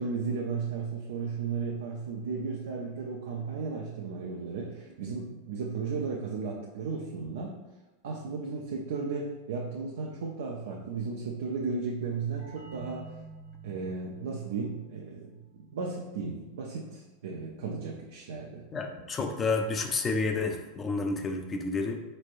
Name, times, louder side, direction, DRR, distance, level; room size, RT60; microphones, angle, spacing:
voice 1, 0.0-7.6 8.0-13.1 13.6-18.6, right 4 dB, 80° right, -1 dB, 0.5 m, -35 dB
sound 1, 12.4-17.8, right 4 dB, 55° right, 1.2 m, -50 dB
voice 2, 18.7-22.0, left 3 dB, 25° left, 4 dB, 0.4 m, -30 dB
4.3 x 3.2 x 2.5 m, 1.0 s
hypercardioid pair, 110°, 0 cm